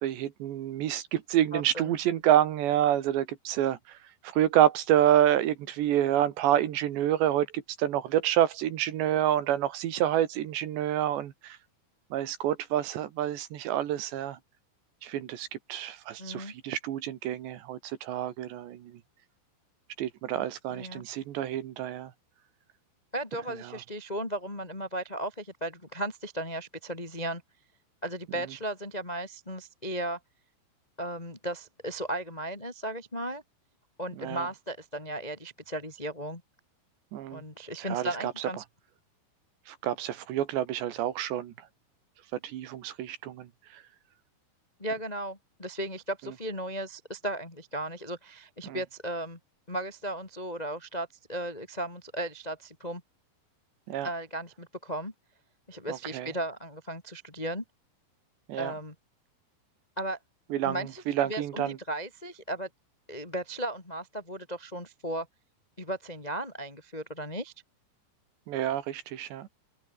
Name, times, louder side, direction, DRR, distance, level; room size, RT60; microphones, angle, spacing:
voice 1, 0.0-11.6 12.1-14.4 15.0-19.0 20.0-22.1 23.7-23.8 34.2-34.5 37.1-37.4 37.8-38.5 39.7-41.7 42.4-43.8 48.6-48.8 53.9-54.1 55.9-56.3 58.5-58.7 60.5-61.8 68.5-69.5, right 11 dB, 70° right, 3.7 m, -28 dB
voice 2, 1.5-1.9 16.2-16.5 20.7-21.0 23.1-27.4 28.0-30.2 31.0-33.4 34.0-36.4 37.3-38.6 44.8-49.4 49.7-53.0 54.0-55.1 55.7-57.6 58.5-58.9 60.0-60.2 60.6-62.7 63.1-65.3 65.8-67.5, right 1 dB, 25° left, 0.8 m, -36 dB
omnidirectional pair, 5.6 m